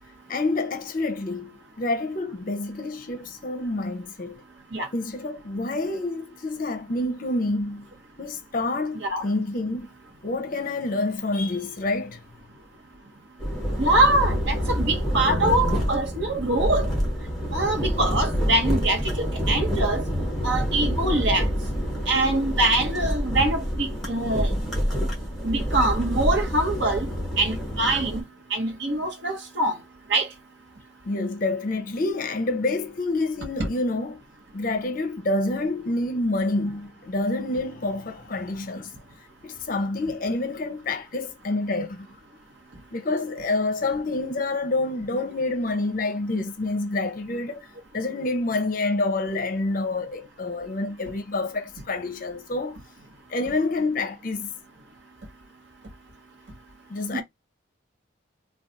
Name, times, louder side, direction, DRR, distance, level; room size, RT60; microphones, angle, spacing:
voice 1, 0.3-4.4 4.9-7.8 8.2-9.9 10.2-12.2 31.0-34.2 34.5-38.9 39.4-42.1 42.9-47.6 47.9-52.8 53.3-54.5 56.9-57.2, left 2 dB, 40° left, 0.5 m, -27 dB
sound 1, 13.4-28.2, equal, ahead, 1.0 m, -27 dB
voice 2, 13.8-16.9 17.5-20.0 20.4-21.4 22.1-24.5 25.4-27.1 27.4-28.2 28.5-29.7 30.1-30.3, right 2 dB, 65° right, 1.0 m, -24 dB
2.3 x 2.3 x 3.9 m
head